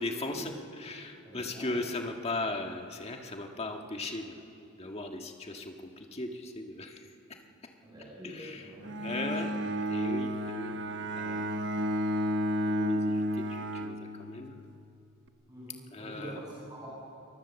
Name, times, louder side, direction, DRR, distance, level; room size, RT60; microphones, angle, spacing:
voice 1, 0.0-7.0 7.3-7.4 8.2-9.5 9.9-10.8 11.1-11.5 12.7-14.6 15.9-16.4, left 2 dB, 30° left, 3 dB, 1.6 m, -38 dB
voice 2, 1.2-1.8 7.8-9.3 15.5-16.9, equal, 20° right, -6 dB, 6.0 m, -46 dB
Bowed string instrument, 8.8-14.6, equal, 55° right, 1.0 m, -32 dB
23.5 x 21.0 x 7.1 m, 2.8 s
head